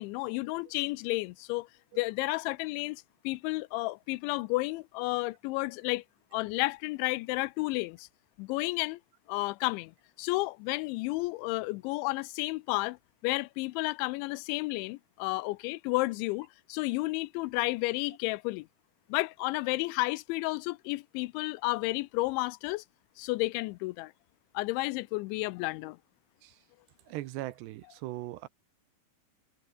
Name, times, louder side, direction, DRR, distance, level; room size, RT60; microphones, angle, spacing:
voice 1, 0.0-1.7 2.0-6.0 6.3-8.1 8.4-9.0 9.3-9.9 10.2-13.0 13.2-18.7 19.1-22.8 23.2-24.1 24.5-26.0, left 22 dB, 85° left, 2.9 m, -32 dB
voice 2, 27.1-28.5, right 16 dB, 80° right, 2.8 m, -39 dB
omnidirectional pair, 5.3 m